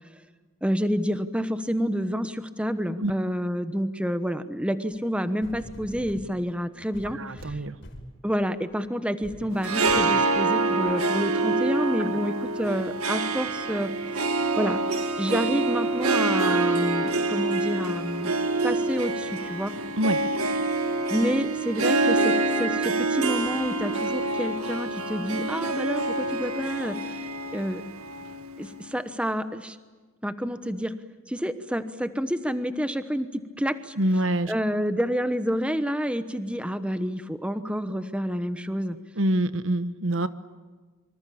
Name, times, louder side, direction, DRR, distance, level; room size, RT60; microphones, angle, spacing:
voice 1, 0.6-7.6 8.2-14.8 15.2-18.4 18.6-19.7 21.1-27.8 28.6-29.8 30.2-30.9 31.3-33.9 34.5-39.0, equal, 5° right, 10 dB, 1.1 m, -29 dB
sound 1, 4.9-5.0 5.4-6.3 6.9-8.2 8.7-8.9 9.2-9.5 9.9-10.2 10.9-11.0, equal, 55° left, 5.7 m, -44 dB
voice 2, 7.1-7.8 12.0-12.1 20.0-20.2 34.0-34.5 39.2-40.3, right 1 dB, 65° right, 13 dB, 1.2 m, -25 dB
Harp, 9.5-28.9, right 2 dB, 90° right, 1.7 m, -26 dB
26.0 x 26.0 x 8.6 m, 1.4 s
head